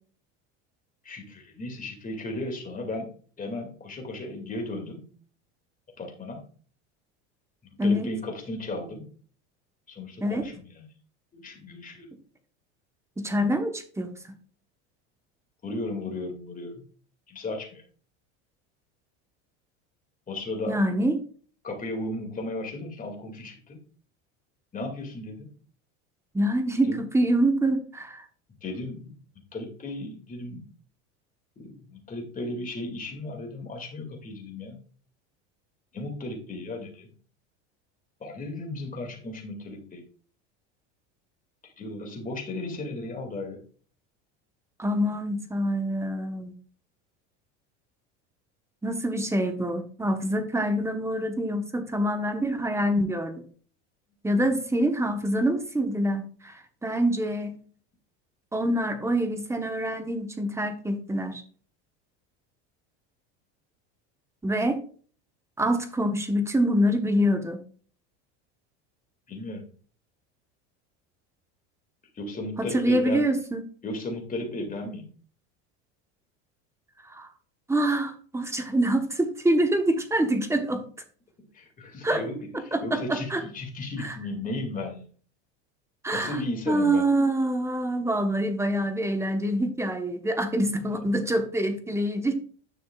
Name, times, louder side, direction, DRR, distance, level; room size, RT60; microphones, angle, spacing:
voice 1, 1.0-5.1 6.0-6.4 7.7-9.1 9.9-10.9 11.3-12.1 15.6-16.8 17.3-17.8 20.3-20.8 21.6-23.8 24.7-25.5 26.9-27.0 28.6-29.2 29.5-30.6 31.6-34.8 35.9-37.1 38.2-40.0 41.6-43.6 69.3-69.6 72.1-73.3 73.8-75.1 81.5-85.1 86.1-87.0 90.9-91.2, left 2 dB, 25° left, 3 dB, 2.3 m, -35 dB
voice 2, 13.2-14.1 20.7-21.2 26.3-28.2 44.8-46.5 48.8-53.4 54.2-56.5 56.8-57.5 58.5-61.4 64.4-64.8 65.6-67.6 72.6-73.6 77.1-77.3 77.7-80.8 82.0-82.2 82.7-83.4 84.0-84.1 86.0-86.4 86.7-92.4, right 1 dB, 10° right, 7 dB, 1.1 m, -25 dB
9.9 x 6.4 x 2.4 m, 0.44 s
supercardioid pair, 115°, 35 cm